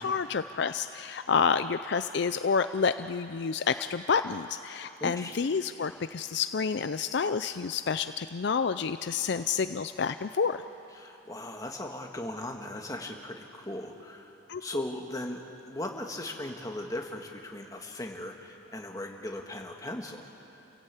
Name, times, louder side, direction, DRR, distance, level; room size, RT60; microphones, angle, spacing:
voice 1, 0.0-10.6 14.5-14.6, left 5 dB, 55° left, 11 dB, 0.4 m, -29 dB
voice 2, 5.0-5.4 10.9-20.3, left 1 dB, 15° left, 2 dB, 1.7 m, -38 dB
28.5 x 17.0 x 8.3 m, 2.9 s
head